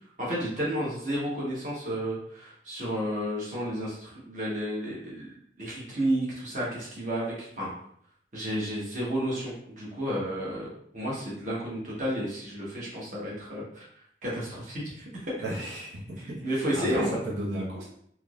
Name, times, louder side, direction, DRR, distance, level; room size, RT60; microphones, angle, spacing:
voice 1, 0.2-7.7 8.3-10.7 10.9-13.8 14.2-15.3 16.4-17.1, equal, 45° right, -6 dB, 1.2 m, -31 dB
voice 2, 15.4-17.8, right 1 dB, 85° right, -5 dB, 1.1 m, -34 dB
3.6 x 3.0 x 2.4 m, 0.67 s
head